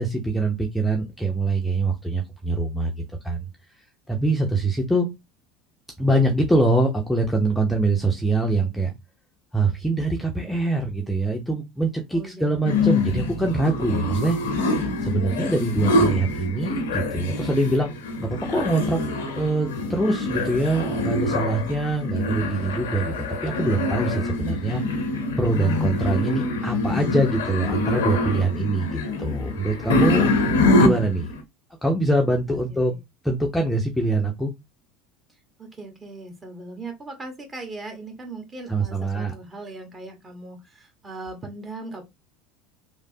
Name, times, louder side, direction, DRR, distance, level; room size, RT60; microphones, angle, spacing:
voice 1, 0.0-3.5 4.1-5.1 6.0-8.9 9.5-14.4 15.0-17.9 18.2-19.0 19.4-24.8 25.4-30.3 30.7-31.3 31.8-32.9 33.2-34.5 38.7-39.3, right 2 dB, 5° left, 0.6 m, -24 dB
voice 2, 12.1-12.8 32.5-33.0 35.6-42.0, right 2 dB, 25° right, 1.1 m, -39 dB
sound 1, 12.6-31.4, left 2 dB, 80° left, 0.6 m, -25 dB
3.2 x 2.0 x 2.7 m
hypercardioid pair, 80°, 0 cm